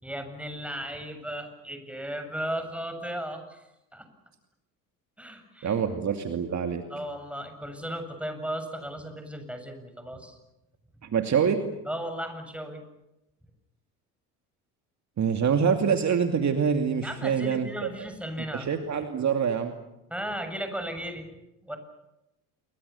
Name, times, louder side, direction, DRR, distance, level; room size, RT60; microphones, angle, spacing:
voice 1, 0.0-3.6 3.9-4.1 5.2-5.7 6.9-10.4 11.9-12.8 17.0-18.7 20.1-21.3 21.6-21.8, right 1 dB, 5° right, 6 dB, 7.3 m, -35 dB
voice 2, 5.6-6.8 11.0-11.6 15.2-18.1 18.5-19.7, right 7 dB, 40° right, 5 dB, 2.6 m, -25 dB
28.5 x 24.0 x 7.1 m, 0.92 s
hypercardioid pair, 70°, 44 cm